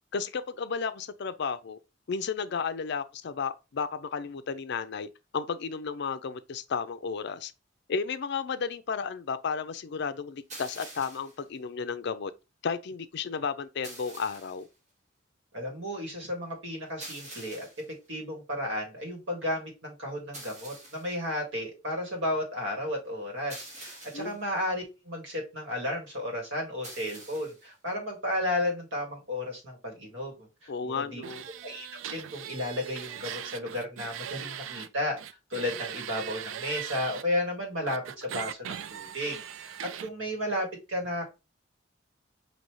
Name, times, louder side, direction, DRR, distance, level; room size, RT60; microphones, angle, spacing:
voice 1, 0.1-1.8 2.1-5.1 5.3-7.5 7.9-12.3 12.6-14.7 24.1-24.4 30.7-31.4, left 5 dB, 60° left, 0.4 m, -33 dB
sound 1, 10.5-11.4 13.8-14.7 17.0-17.9 20.3-21.2 23.5-24.4 26.8-27.7, right 2 dB, 40° right, 1.5 m, -46 dB
voice 2, 15.5-17.7 18.1-30.5 30.8-31.2 31.6-35.2 35.5-41.2, left 1 dB, 70° right, 2.0 m, -33 dB
sound 2, 31.2-34.9 35.2-37.2 37.9-40.1, right 9 dB, 85° right, 0.4 m, -39 dB
5.4 x 2.8 x 3.1 m
head